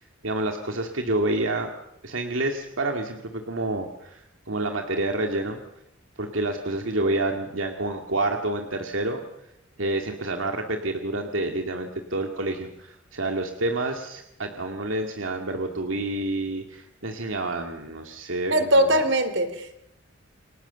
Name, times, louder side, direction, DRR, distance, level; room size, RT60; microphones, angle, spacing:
voice 1, 0.0-1.7 2.0-5.6 6.2-9.2 9.8-19.0, right 2 dB, 85° right, 3 dB, 2.3 m, -28 dB
voice 2, 18.5-19.8, right 1 dB, 65° right, 10 dB, 3.3 m, -21 dB
29.5 x 24.0 x 7.0 m, 0.83 s
head